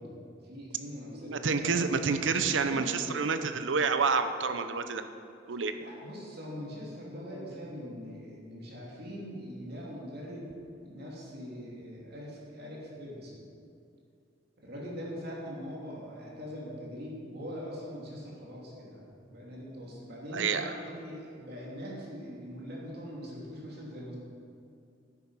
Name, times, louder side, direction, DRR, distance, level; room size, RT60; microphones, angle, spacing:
voice 1, 0.0-2.1 2.4-3.0 3.4-3.7 5.7-10.5 10.8-13.5 14.6-24.2, equal, 55° right, -4 dB, 2.8 m, -42 dB
voice 2, 1.2-5.0 5.5-5.7 20.3-20.7, right 5 dB, 75° right, 9 dB, 0.7 m, -28 dB
9.9 x 8.5 x 5.6 m, 2.6 s
head